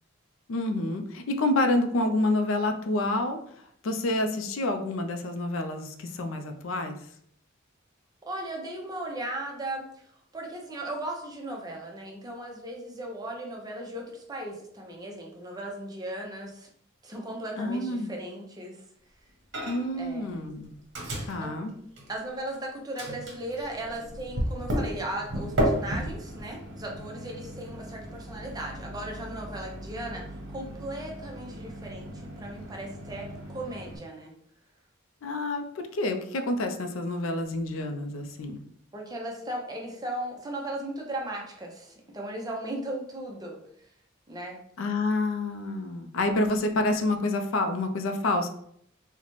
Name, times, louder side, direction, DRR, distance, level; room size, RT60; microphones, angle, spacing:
voice 1, 0.5-3.4 3.8-7.0 17.6-18.1 19.7-20.8 21.3-21.7 35.2-38.6 44.8-48.5, left 2 dB, 80° left, 6 dB, 0.4 m, -28 dB
voice 2, 8.3-10.0 10.3-16.7 17.0-18.8 19.9-20.6 21.4-21.8 22.1-34.3 38.9-43.6 44.3-44.6, right 1 dB, 20° right, 0 dB, 0.6 m, -37 dB
Microwave oven, 19.5-20.0 20.3-22.6 23.0-34.0, equal, 60° right, 0.9 m, -34 dB
3.9 x 2.1 x 3.0 m, 0.68 s
head